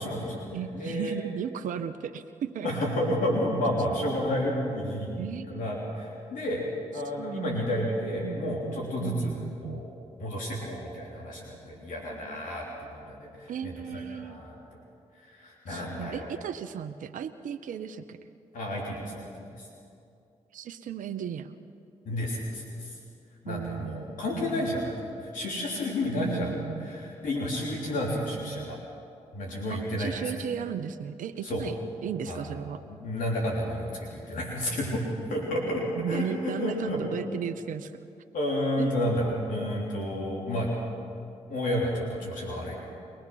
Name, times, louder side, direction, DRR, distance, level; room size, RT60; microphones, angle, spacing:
voice 1, 0.0-1.2 2.6-6.6 6.9-9.3 9.6-9.9 10.2-14.8 15.2-16.3 18.5-19.3 19.6-19.7 22.0-23.0 23.4-26.5 26.8-28.8 29.3-30.1 31.4-31.6 32.3-32.5 32.9-35.0 35.3-37.0 38.3-40.7 41.5-42.8, left 1 dB, 80° left, -3 dB, 3.4 m, -31 dB
voice 2, 0.5-2.8 5.2-5.7 7.2-7.9 8.2-9.8 13.5-14.4 15.7-18.2 20.5-21.5 23.5-24.6 26.1-26.9 28.1-28.8 29.7-31.8 32.0-32.8 36.0-37.9 38.8-39.0, right 8 dB, 75° right, 9 dB, 0.7 m, -35 dB
23.0 x 19.0 x 6.1 m, 2.5 s
supercardioid pair, 45°, 14 cm